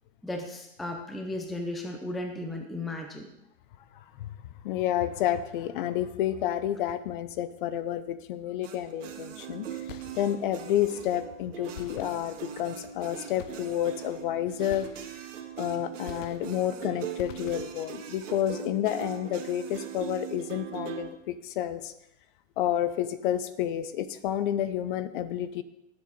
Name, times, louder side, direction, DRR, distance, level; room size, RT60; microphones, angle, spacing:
voice 1, 0.2-3.3, left 1 dB, ahead, 4 dB, 0.5 m, -35 dB
voice 2, 4.6-9.7 10.1-14.9 15.6-21.9 22.6-25.6, left 11 dB, 40° left, 14 dB, 0.7 m, -30 dB
sound 1, 8.6-21.1, right 9 dB, 65° right, 1.7 m, -40 dB
sound 2, 9.9-10.6 11.7-12.7 13.4-14.0 14.7-15.5 16.1-16.8 17.2-18.0, left 9 dB, 70° left, 0.9 m, -46 dB
17.5 x 7.7 x 4.2 m, 0.82 s
hypercardioid pair, 135°, 40 cm